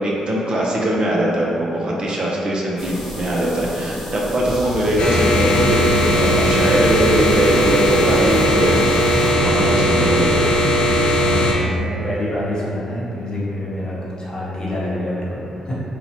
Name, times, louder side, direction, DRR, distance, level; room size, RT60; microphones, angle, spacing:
voice 1, 0.0-8.8 9.3-10.5, right 1 dB, 45° right, -3 dB, 0.5 m, -21 dB
sound 1, 2.8-9.3, equal, 5° left, 1.1 m, -30 dB
sound 2, 5.0-11.5, equal, 60° left, 0.4 m, -17 dB
voice 2, 9.9-10.2 11.1-15.8, left 1 dB, 35° left, -7 dB, 0.8 m, -27 dB
2.8 x 2.1 x 2.7 m, 2.7 s
supercardioid pair, 55°, 2 cm